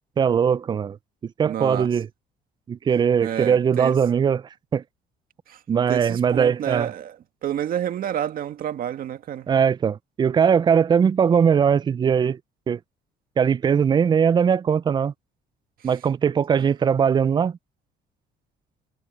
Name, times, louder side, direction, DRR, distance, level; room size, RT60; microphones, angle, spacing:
voice 1, 0.2-1.0 1.2-2.1 2.7-4.4 4.7-4.8 5.7-6.9 9.5-12.4 12.7-12.8 13.4-15.1 15.8-17.6, right 7 dB, 25° right, 0.3 m, -20 dB
voice 2, 1.4-1.9 3.2-4.0 5.5-5.6 5.9-7.2 7.4-9.5, right 10 dB, 60° right, 1.9 m, -29 dB
cardioid pair, 110°, 17 cm